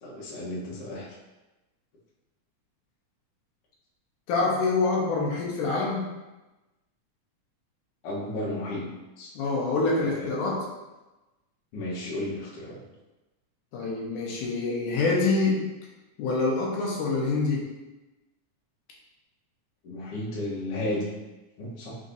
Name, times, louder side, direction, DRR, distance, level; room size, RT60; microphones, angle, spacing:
voice 1, 0.0-1.1 8.0-8.9 9.2-9.3 10.1-10.3 11.7-12.8 19.8-21.1 21.6-22.0, left 1 dB, 60° left, -5 dB, 1.7 m, -33 dB
voice 2, 4.3-6.1 9.4-10.7 13.7-15.7 16.2-17.7, left 3 dB, 80° left, -3 dB, 2.3 m, -26 dB
5.3 x 3.6 x 2.6 m, 1.1 s
omnidirectional pair, 3.6 m